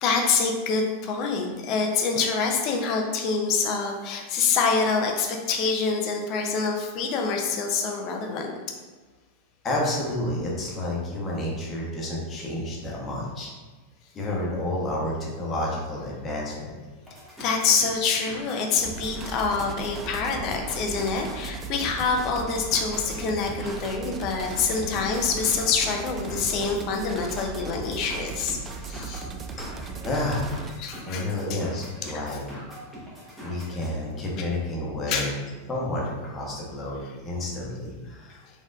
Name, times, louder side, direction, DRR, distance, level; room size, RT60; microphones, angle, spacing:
voice 1, 0.0-8.5 17.4-28.6 28.9-29.3 30.8-31.2 31.5-31.6 32.1-32.2 34.4-34.5 35.1-35.3 38.3-38.4, left 5 dB, 40° left, 3 dB, 0.6 m, -26 dB
voice 2, 9.6-13.5 14.1-16.7 29.6-30.4 31.0-32.7 33.4-35.3 35.7-38.4, left 1 dB, 25° left, -3 dB, 1.1 m, -30 dB
sound 1, 17.0-34.0, equal, 5° right, 1.3 m, -43 dB
sound 2, 18.8-30.7, right 4 dB, 25° right, 0.3 m, -37 dB
4.2 x 3.6 x 2.5 m, 1.3 s
figure-of-eight pair, 90°, 0 cm